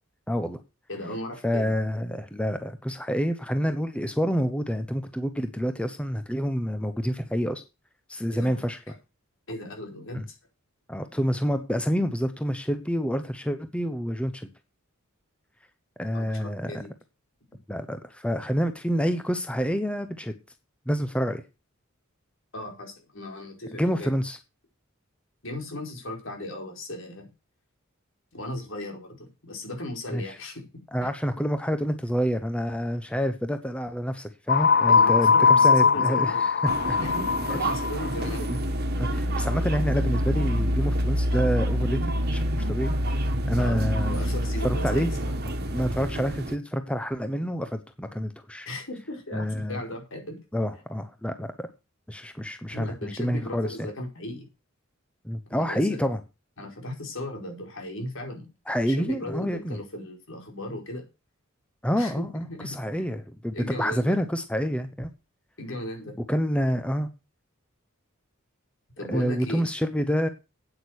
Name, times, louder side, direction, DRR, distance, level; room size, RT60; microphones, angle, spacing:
voice 1, 0.3-0.6 1.4-7.6 8.1-8.8 10.1-10.2 10.9-14.5 16.0-16.7 17.7-20.3 20.9-21.4 23.8-24.4 30.1-30.4 30.9-37.0 37.5-37.6 38.5-38.6 38.9-44.2 44.6-45.1 45.6-48.7 49.3-49.8 50.5-51.7 52.1-53.9 55.2-56.2 58.7-59.8 61.8-65.1 66.3-67.1 69.1-70.3, equal, 5° left, 9 dB, 1.0 m, -28 dB
voice 2, 0.9-1.7 8.3-8.9 9.5-10.2 16.1-16.9 22.5-24.1 25.4-27.3 28.3-30.7 34.9-36.4 36.8-38.5 43.6-45.4 48.7-50.4 52.7-54.5 55.5-56.0 56.6-58.5 58.9-61.0 62.0-62.3 62.6-63.0 63.5-64.2 65.6-66.2 69.0-69.6, left 1 dB, 65° left, 2 dB, 4.8 m, -37 dB
sound 1, 34.5-38.1, left 5 dB, 45° left, 0.7 m, -20 dB
sound 2, 36.7-46.6, equal, 50° right, 1.6 m, -27 dB
8.9 x 8.9 x 6.4 m, 0.28 s
head